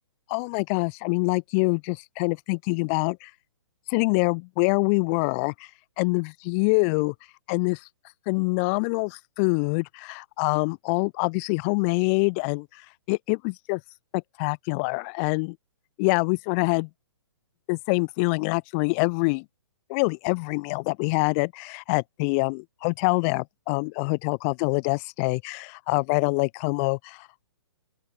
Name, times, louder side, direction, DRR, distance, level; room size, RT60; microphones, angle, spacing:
voice 1, 0.3-3.3 3.9-5.7 6.0-7.1 7.5-7.9 8.3-12.8 13.1-13.8 14.1-15.5 16.0-16.9 17.7-19.4 19.9-27.3, left 34 dB, 30° left, 4.1 m, -25 dB
open air
hypercardioid pair, 155°, 14 cm